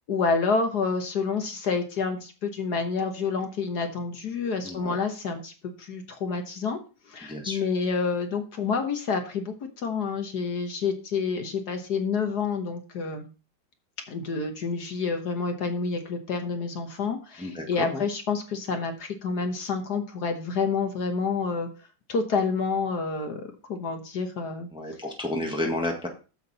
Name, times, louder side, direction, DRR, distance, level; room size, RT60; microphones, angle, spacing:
voice 1, 0.1-5.5 5.8-6.8 7.1-13.3 14.1-21.7 22.1-24.7, left 4 dB, 60° left, 5 dB, 1.6 m, -28 dB
voice 2, 4.6-5.0 7.2-7.6 17.4-18.0 24.7-26.1, left 1 dB, 5° right, 2 dB, 1.4 m, -31 dB
8.0 x 7.4 x 4.1 m, 0.34 s
omnidirectional pair, 2.0 m